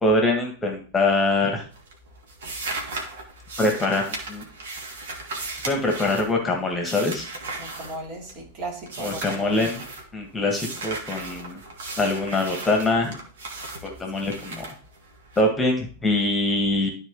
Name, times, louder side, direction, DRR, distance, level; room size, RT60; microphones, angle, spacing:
voice 1, 0.0-1.6 3.6-4.5 5.7-7.3 9.0-9.8 10.1-11.6 12.0-13.2 13.8-14.6 15.4-16.9, left 2 dB, 10° left, 1.7 m, -23 dB
sound 1, 1.0-1.5 1.7-8.5 8.9-10.0 10.5-15.4, right 3 dB, 60° right, 1.8 m, -36 dB
voice 2, 7.5-9.7 14.2-14.3, right 2 dB, 40° right, 2.7 m, -36 dB
12.5 x 4.3 x 3.8 m
figure-of-eight pair, 90°, 0 cm